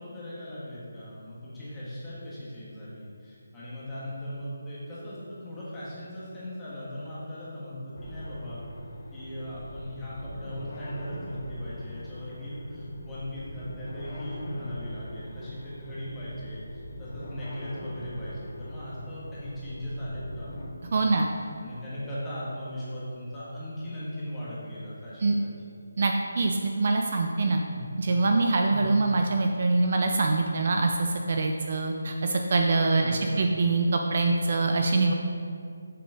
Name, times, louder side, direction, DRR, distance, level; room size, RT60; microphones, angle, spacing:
voice 1, 0.0-8.6 9.1-20.5 20.8-21.2 21.6-25.7 27.7-27.8 28.6-28.9 32.9-33.5, equal, 10° left, -10 dB, 1.5 m, -38 dB
sound 1, 8.0-20.7, equal, 35° left, 1.2 m, -41 dB
voice 2, 20.9-21.3 25.2-25.3 26.0-27.6 28.0-35.1, right 3 dB, 40° right, 3 dB, 0.5 m, -24 dB
7.1 x 5.9 x 4.8 m, 2.4 s
figure-of-eight pair, 170°, 0 cm